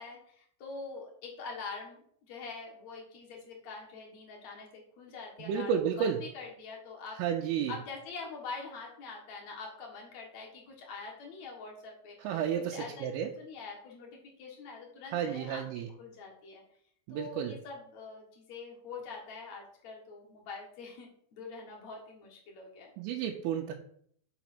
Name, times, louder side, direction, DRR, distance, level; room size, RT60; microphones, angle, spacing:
voice 1, 0.0-5.7 6.0-7.2 7.7-15.6 16.0-16.6 17.1-22.9, left 4 dB, 85° left, -1 dB, 1.5 m, -45 dB
voice 2, 5.4-6.2 7.2-7.7 12.2-13.3 15.1-15.9 17.1-17.5 23.0-23.7, right 8 dB, 85° right, 1 dB, 3.2 m, -32 dB
6.3 x 5.9 x 5.9 m, 0.63 s
omnidirectional pair, 5.6 m